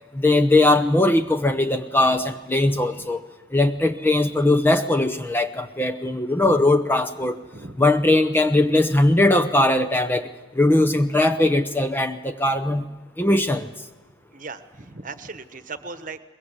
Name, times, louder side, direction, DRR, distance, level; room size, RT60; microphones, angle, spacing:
voice 1, 0.1-3.2 3.5-7.4 7.8-10.3 10.6-12.9 13.2-13.7, left 2 dB, 10° left, 8 dB, 0.7 m, -20 dB
voice 2, 2.6-3.1 6.3-6.6 7.5-7.8 8.3-8.4 14.3-16.2, right 3 dB, 40° right, 11 dB, 1.2 m, -38 dB
22.5 x 21.5 x 8.1 m, 1.2 s
head